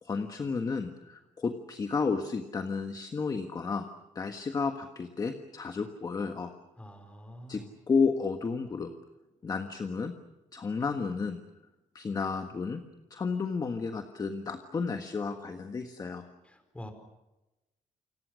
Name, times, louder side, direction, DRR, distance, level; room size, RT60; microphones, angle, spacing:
voice 1, 0.0-3.8 4.1-6.5 7.5-8.9 9.4-10.1 10.5-11.4 11.9-12.8 13.1-16.2, left 5 dB, 25° left, 6 dB, 1.5 m, -32 dB
voice 2, 6.8-7.7 16.4-16.9, equal, 10° left, 7 dB, 4.6 m, -46 dB
29.0 x 26.5 x 6.4 m, 0.99 s
cardioid pair, 165°, 14 cm